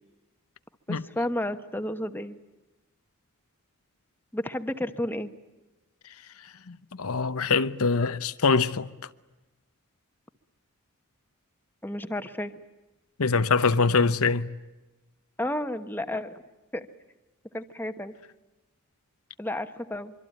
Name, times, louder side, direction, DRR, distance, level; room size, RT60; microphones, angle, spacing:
voice 1, 0.9-2.4 4.3-5.3 11.8-12.5 15.4-16.4 16.7-16.9 17.5-18.1 19.4-20.1, left 1 dB, 10° left, 1.1 m, -32 dB
voice 2, 6.7-8.9 13.2-14.5, left 4 dB, 80° left, 0.9 m, -24 dB
25.0 x 24.5 x 9.2 m
head